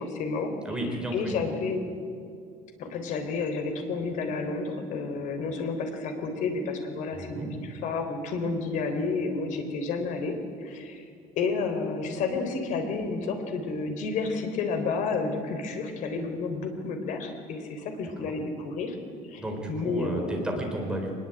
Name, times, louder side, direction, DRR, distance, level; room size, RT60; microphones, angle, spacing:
voice 1, 0.0-0.5 1.1-1.8 2.8-11.0 11.4-19.0 19.3-20.4, left 4 dB, 60° left, 6 dB, 3.8 m, -31 dB
voice 2, 0.6-1.4 7.1-7.5 18.2-18.3 19.4-21.1, right 1 dB, 5° right, 1 dB, 4.0 m, -32 dB
23.5 x 20.5 x 9.0 m, 2.3 s
cardioid pair, 170°, 14 cm